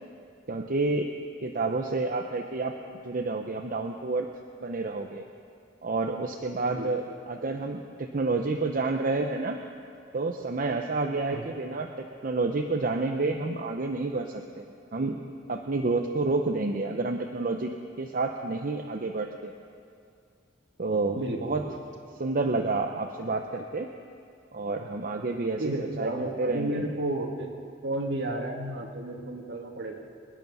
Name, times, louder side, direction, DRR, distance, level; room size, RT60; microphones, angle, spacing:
voice 1, 0.5-1.1 1.4-2.7 3.0-4.3 4.6-5.2 5.8-7.0 7.3-9.6 10.1-14.6 14.9-15.2 15.5-17.7 18.0-19.5 20.8-21.6 22.2-23.9 24.5-26.1 26.4-26.9, right 3 dB, 50° right, 3 dB, 0.7 m, -29 dB
voice 2, 6.7-7.1 11.3-11.5 21.1-21.7 25.6-27.5 27.8-30.0, right 1 dB, 65° right, 1 dB, 2.0 m, -32 dB
26.0 x 9.4 x 5.5 m, 2.4 s
head